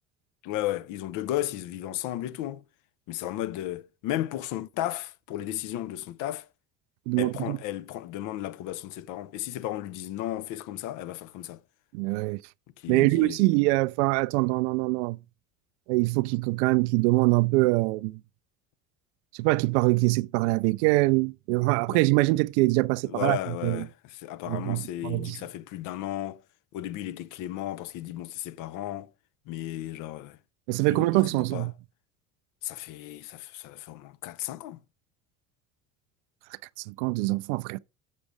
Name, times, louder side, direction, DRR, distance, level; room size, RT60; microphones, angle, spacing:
voice 1, 0.4-2.6 3.1-6.4 7.2-11.6 12.8-13.4 21.9-22.0 23.1-23.9 24.2-26.4 26.7-29.1 29.5-30.4 30.9-31.7 32.6-34.8, left 13 dB, 50° left, 0.7 m, -34 dB
voice 2, 7.1-7.6 11.9-12.4 12.9-15.2 15.9-18.2 19.3-23.9 24.5-25.4 30.7-31.7 36.9-37.8, right 23 dB, 60° right, 0.5 m, -24 dB
6.9 x 6.5 x 4.9 m
figure-of-eight pair, 60°, 39 cm